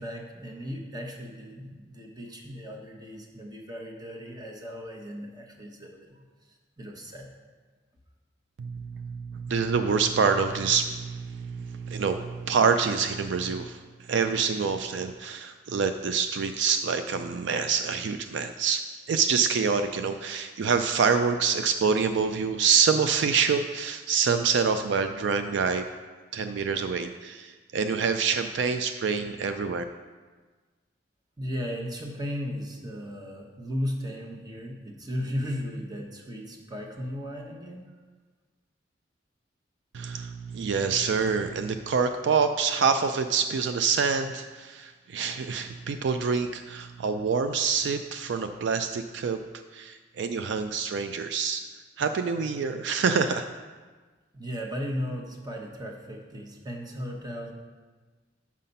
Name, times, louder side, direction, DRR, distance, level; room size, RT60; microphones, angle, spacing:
voice 1, 0.0-6.2 6.5-7.3 31.4-37.8 54.3-57.5, equal, 20° right, 1 dB, 1.0 m, -36 dB
voice 2, 8.6-13.8 14.1-25.8 26.3-29.8 39.9-49.4 49.7-51.6 52.0-53.5, right 5 dB, 65° right, 8 dB, 0.4 m, -26 dB
7.3 x 5.7 x 5.4 m, 1.4 s
head